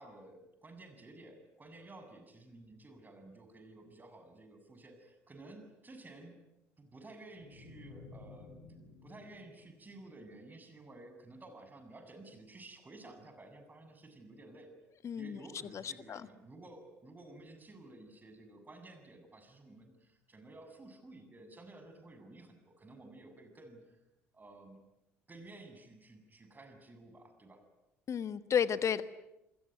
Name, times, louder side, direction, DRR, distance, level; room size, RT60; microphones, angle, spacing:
voice 1, 0.0-6.4 6.8-8.5 9.0-14.8 15.2-24.0 24.3-24.8 25.3-27.6, right 2 dB, 25° right, 7 dB, 7.6 m, -53 dB
sound 1, 7.4-10.6, left 4 dB, 70° left, 5.2 m, -55 dB
voice 2, 15.0-15.4 15.7-16.2 28.1-29.0, left 8 dB, 45° left, 14 dB, 1.4 m, -32 dB
27.0 x 22.0 x 9.4 m, 0.91 s
hypercardioid pair, 55°, 7 cm